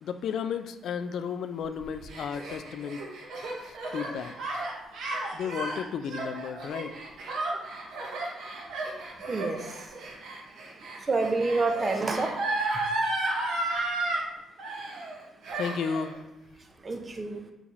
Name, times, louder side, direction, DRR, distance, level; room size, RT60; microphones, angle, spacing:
voice 1, 0.0-3.0 3.9-4.3 5.3-6.9 15.6-16.2, left 7 dB, 70° left, 10 dB, 0.3 m, -33 dB
Gasp, 1.8-14.2 14.6-15.2 15.4-16.1, right 2 dB, 80° right, 1.1 m, -33 dB
voice 2, 9.3-9.6 11.1-12.3 16.8-17.4, right 3 dB, 30° right, 5 dB, 0.6 m, -27 dB
4.6 x 4.1 x 2.5 m, 0.96 s
cardioid pair, 90°, 0 cm